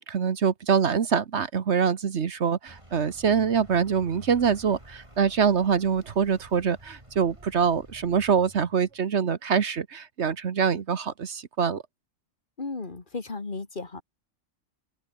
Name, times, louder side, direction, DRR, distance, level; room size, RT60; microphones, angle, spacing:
voice 1, 0.1-11.8, right 6 dB, 60° right, 1.4 m, -24 dB
Vehicle, 2.7-9.0, right 1 dB, 25° right, 5.8 m, -50 dB
voice 2, 12.6-14.0, left 3 dB, 40° left, 2.0 m, -35 dB
open air
omnidirectional pair, 1.3 m